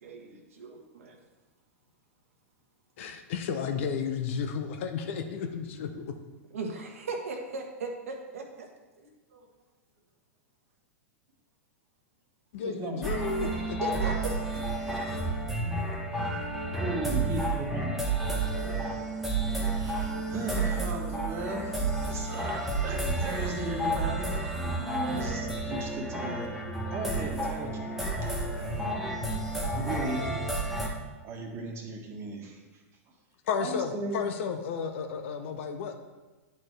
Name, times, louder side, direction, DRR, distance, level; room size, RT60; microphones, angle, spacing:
voice 1, 0.0-1.2 6.5-8.4 9.3-9.5 13.4-14.9, right 3 dB, 70° right, 3 dB, 1.2 m, -38 dB
voice 2, 3.0-6.1 12.5-13.8 33.5-36.0, left 6 dB, 60° left, 5 dB, 0.6 m, -33 dB
voice 3, 12.6-13.2 16.8-18.1 19.7-29.2 29.7-30.4 31.2-32.8 33.6-34.2, right 2 dB, 35° right, 2 dB, 1.4 m, -37 dB
sound 1, 13.0-30.9, right 2 dB, ahead, 1.2 m, -31 dB
10.5 x 4.2 x 3.3 m, 1.2 s
figure-of-eight pair, 95°, 8 cm